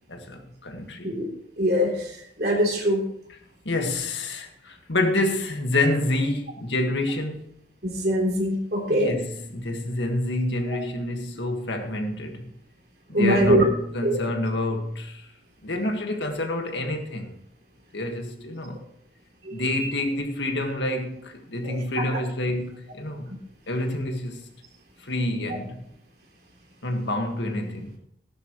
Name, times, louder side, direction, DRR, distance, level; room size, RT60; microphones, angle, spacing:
voice 1, 0.1-1.2 3.7-7.5 8.9-12.5 13.1-15.3 15.6-17.4 17.9-18.9 19.5-23.3 23.7-24.5 25.0-25.9 26.8-28.0, left 1 dB, 75° left, 1.8 m, -28 dB
voice 2, 1.6-3.0 7.8-9.1 10.7-10.8 13.1-13.7 14.0-14.2 19.4-19.8 21.6-21.8, equal, 55° right, 3.4 m, -23 dB
15.0 x 11.5 x 3.2 m
head